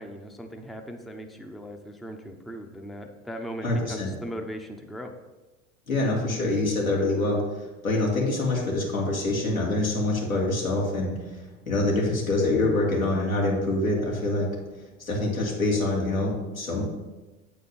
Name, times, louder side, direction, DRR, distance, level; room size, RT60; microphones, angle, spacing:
voice 1, 0.0-5.1, equal, ahead, 4 dB, 0.7 m, -38 dB
voice 2, 3.6-4.1 5.9-14.5 15.0-16.8, left 2 dB, 90° left, -4 dB, 2.1 m, -25 dB
8.1 x 4.5 x 5.6 m, 1.1 s
figure-of-eight pair, 75°, 40 cm